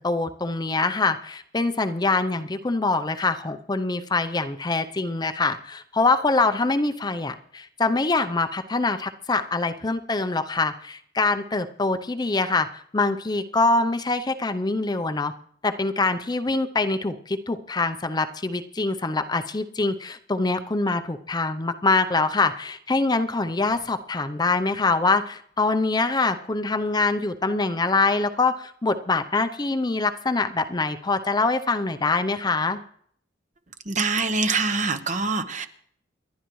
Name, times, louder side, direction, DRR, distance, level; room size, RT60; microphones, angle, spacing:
voice 1, 0.0-15.3 15.6-32.8, left 3 dB, 20° left, 9 dB, 0.6 m, -24 dB
voice 2, 33.9-35.7, right 4 dB, 40° right, 8 dB, 1.0 m, -24 dB
28.5 x 11.5 x 3.1 m, 0.63 s
head